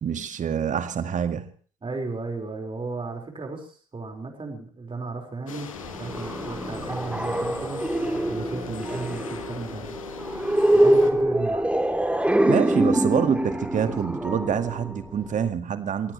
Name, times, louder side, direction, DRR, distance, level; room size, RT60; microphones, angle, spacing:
voice 1, 0.0-1.5 12.5-16.1, right 8 dB, 50° right, 10 dB, 1.9 m, -26 dB
voice 2, 1.8-7.8 8.3-10.0 10.7-11.7, right 3 dB, 30° right, 2 dB, 4.9 m, -35 dB
sound 1, 5.5-11.1, left 7 dB, 90° left, 1.5 m, -40 dB
sound 2, 5.7-15.5, right 1 dB, 5° right, 2.6 m, -24 dB
24.5 x 17.0 x 3.2 m, 0.41 s
hypercardioid pair, 45°, 17 cm